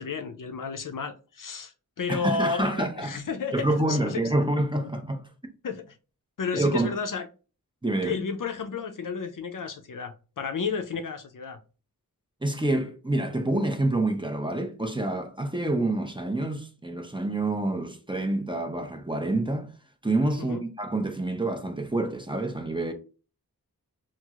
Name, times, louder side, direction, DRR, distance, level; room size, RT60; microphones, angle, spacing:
voice 1, 0.0-4.2 4.8-4.9 5.6-6.0 6.4-7.3 8.0-11.6 20.4-20.6, left 5 dB, 60° left, 0.5 m, -32 dB
voice 2, 2.1-3.2 3.5-5.3 6.5-6.9 7.8-8.2 12.4-19.7 20.0-22.9, right 2 dB, 15° right, 0.6 m, -27 dB
4.3 x 2.0 x 2.4 m
wide cardioid pair, 50°, 37 cm